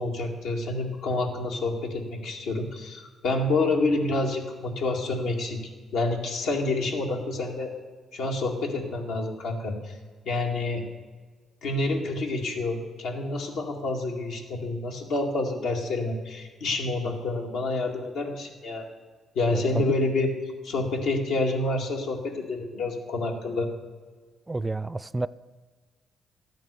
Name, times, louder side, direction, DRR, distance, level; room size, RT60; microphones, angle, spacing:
voice 1, 0.0-5.6 5.9-7.7 8.1-9.9 10.3-10.8 11.6-18.9 19.4-20.3 20.6-23.7, left 2 dB, 85° left, 1 dB, 2.1 m, -28 dB
voice 2, 19.5-19.8 24.5-25.3, right 2 dB, 20° right, 18 dB, 0.3 m, -29 dB
12.5 x 9.3 x 6.8 m, 1.4 s
cardioid pair, 90°, 0 cm